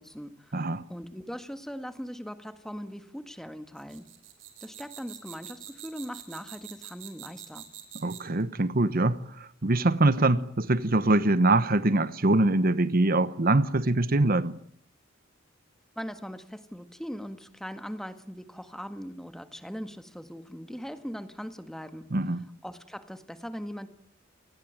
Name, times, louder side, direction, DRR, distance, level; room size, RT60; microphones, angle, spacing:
voice 1, 0.0-4.1 4.6-7.7 16.0-22.1 22.6-23.9, equal, ahead, 1.8 m, -40 dB
voice 2, 0.5-0.8 8.0-14.6 22.1-22.4, right 2 dB, 50° right, 1.1 m, -24 dB
sound 1, 3.8-8.4, right 11 dB, 90° right, 5.8 m, -45 dB
28.5 x 19.5 x 9.1 m
head